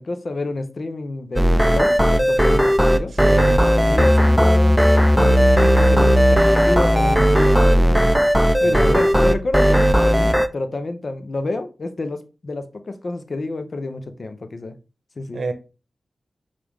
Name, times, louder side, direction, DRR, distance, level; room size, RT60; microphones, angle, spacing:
voice 1, 0.0-3.1 3.5-4.8 5.1-8.1 8.6-14.8 15.2-15.4, left 2 dB, 55° left, 0.6 m, -29 dB
sound 1, 1.4-10.5, equal, ahead, 0.4 m, -15 dB
voice 2, 3.2-3.6 8.6-9.0 15.3-15.5, right 3 dB, 70° right, 0.7 m, -26 dB
5.9 x 2.5 x 3.5 m
cardioid pair, 40°, 0 cm